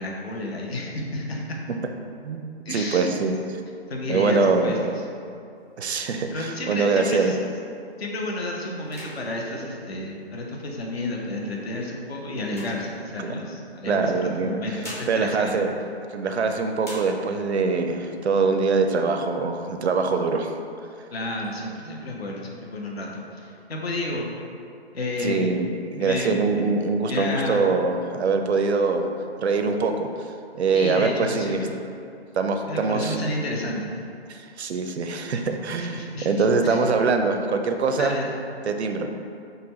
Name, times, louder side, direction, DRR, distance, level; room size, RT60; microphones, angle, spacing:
voice 1, 0.0-1.6 2.6-3.1 3.9-5.0 6.3-7.4 8.0-15.6 21.1-24.3 24.9-25.5 26.0-26.6 27.0-27.7 30.7-31.8 32.7-33.9 35.9-36.8 38.0-38.4, left 1 dB, 70° left, -1 dB, 0.8 m, -31 dB
voice 2, 2.7-3.3 4.1-4.8 5.8-7.4 13.2-13.3 13.9-14.6 15.1-15.7 16.1-20.5 25.2-29.1 29.4-30.1 30.5-31.6 32.4-33.2 34.3-38.1 38.7-39.1, right 4 dB, 85° right, 6 dB, 0.5 m, -23 dB
sound 1, 5.6-7.7 8.2-8.4 8.8-10.7 11.4-13.5 14.4-16.4 16.8-17.6 18.1-18.2 18.5-19.1 19.6-20.5, left 1 dB, 15° left, 0.4 m, -45 dB
3.8 x 2.2 x 4.4 m, 2.5 s
figure-of-eight pair, 145°, 32 cm